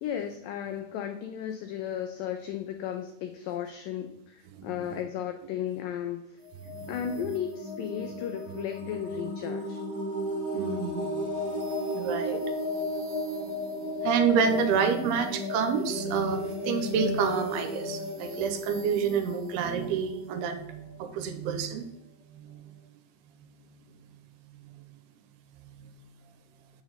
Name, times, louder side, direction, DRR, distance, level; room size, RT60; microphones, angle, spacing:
voice 1, 0.0-6.4 6.9-9.8, left 9 dB, 90° left, 6 dB, 1.9 m, -35 dB
voice 2, 4.5-5.0 6.7-6.9 10.5-11.6 11.9-12.4 12.8-13.0 13.4-21.9 22.4-22.6 24.5-24.8 25.8-25.9, right 6 dB, 90° right, 8 dB, 2.7 m, -29 dB
sound 1, 6.4-21.1, left 1 dB, 45° right, 2.1 m, -34 dB
7.1 x 6.6 x 4.0 m, 0.84 s
omnidirectional pair, 4.6 m